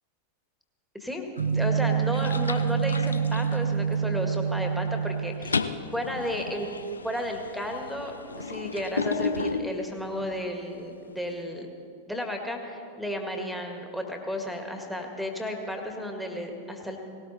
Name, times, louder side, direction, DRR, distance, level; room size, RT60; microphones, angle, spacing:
sound 1, 1.4-1.7 2.1-4.2 4.6-4.9 5.2-10.4, left 4 dB, 75° left, 0.5 m, -34 dB
sound 2, 1.4-5.7, right 7 dB, 70° right, 0.7 m, -27 dB
voice 1, 1.5-6.7 7.0-11.7 12.1-17.0, equal, ahead, 3 dB, 1.9 m, -33 dB
18.5 x 18.0 x 4.2 m, 2.6 s
figure-of-eight pair, 90°, 0 cm